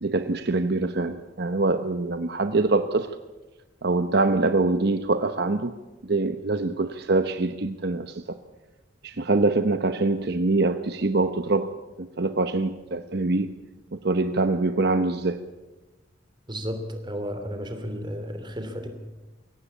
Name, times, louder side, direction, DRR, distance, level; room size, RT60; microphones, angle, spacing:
voice 1, 0.0-3.2 3.8-5.7 6.0-8.4 9.0-11.7 12.0-13.5 13.9-15.4, right 3 dB, 60° right, 9 dB, 0.9 m, -24 dB
voice 2, 16.5-18.9, equal, 25° right, 7 dB, 3.0 m, -33 dB
22.5 x 17.5 x 8.4 m, 1.1 s
head